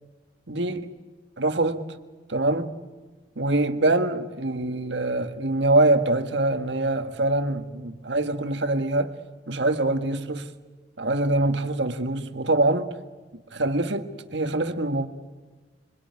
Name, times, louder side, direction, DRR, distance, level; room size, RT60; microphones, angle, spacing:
voice 1, 0.5-0.9 1.4-1.8 2.3-2.7 3.3-9.2 9.5-10.5 11.0-12.9 13.5-15.1, right 2 dB, 75° right, 1.7 m, -24 dB
26.0 x 23.5 x 9.6 m
head